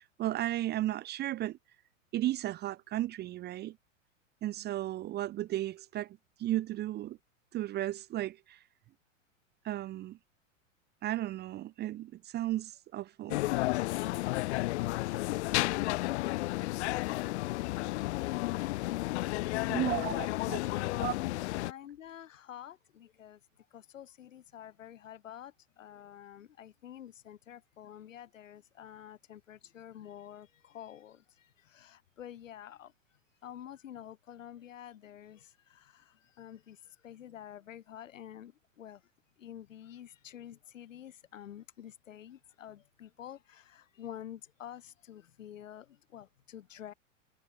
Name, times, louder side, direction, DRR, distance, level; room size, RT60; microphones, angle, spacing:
voice 1, 0.0-1.6 2.1-3.8 4.4-7.2 7.5-8.6 9.6-10.2 11.0-13.4 19.5-20.6 21.0-21.1, right 14 dB, 25° right, 0.8 m, -34 dB
sound 1, 13.3-21.7, left 19 dB, 55° left, 1.1 m, -32 dB
voice 2, 19.3-20.3 20.6-21.3 21.6-23.4 23.7-32.9 33.4-39.0 39.4-46.9, left 10 dB, 75° left, 5.4 m, -48 dB
hypercardioid pair, 105°, 39 cm